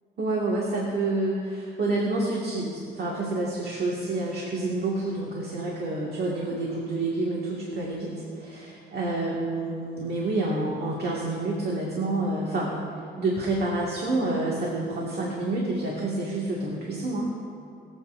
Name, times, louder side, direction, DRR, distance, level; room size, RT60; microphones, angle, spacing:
voice 1, 0.2-12.7 13.2-17.3, right 2 dB, 55° right, -4 dB, 2.2 m, -28 dB
23.5 x 8.2 x 2.7 m, 2.4 s
cardioid pair, 90°, 20 cm